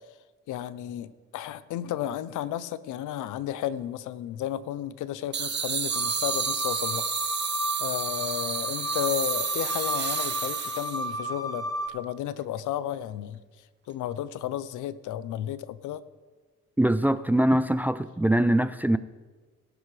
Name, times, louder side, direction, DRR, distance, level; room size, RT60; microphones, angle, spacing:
voice 1, 0.5-7.1 7.8-13.4 13.9-16.0, left 11 dB, 85° left, 0.6 m, -33 dB
sound 1, 5.3-11.1, right 7 dB, 35° right, 0.8 m, -30 dB
sound 2, 5.9-11.9, equal, 10° left, 1.0 m, -33 dB
voice 2, 16.8-19.0, right 1 dB, 5° right, 0.3 m, -23 dB
18.5 x 11.0 x 3.2 m
cardioid pair, 90°, 30 cm